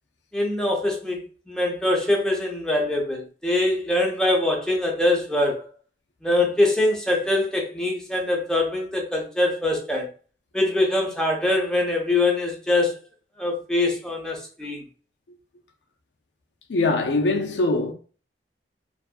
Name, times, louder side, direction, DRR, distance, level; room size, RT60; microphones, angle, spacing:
voice 1, 0.3-5.6 6.2-10.1 10.5-13.0 13.4-14.8, left 2 dB, 5° left, 0.6 m, -23 dB
voice 2, 16.7-17.9, left 2 dB, 85° left, 0.5 m, -22 dB
2.6 x 2.4 x 2.3 m
head